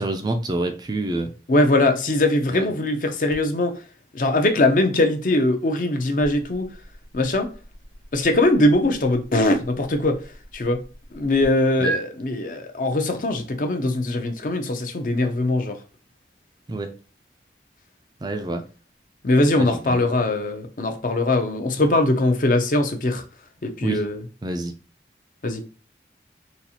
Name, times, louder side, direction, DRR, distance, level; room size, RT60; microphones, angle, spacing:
voice 1, 0.0-1.3 2.5-2.7 11.8-11.9 16.7-16.9 18.2-18.6 19.5-20.1 23.8-24.0 24.4-24.7, right 2 dB, 25° right, 0.3 m, -27 dB
voice 2, 1.5-3.7 4.1-6.7 7.1-7.5 8.1-10.2 10.5-10.8 11.1-15.8 19.2-23.2 23.6-24.2 25.4-25.6, left 2 dB, 45° left, 0.5 m, -21 dB
sound 1, 3.3-11.5 11.8-12.0, right 3 dB, 80° left, 0.8 m, -39 dB
4.0 x 2.4 x 2.8 m
head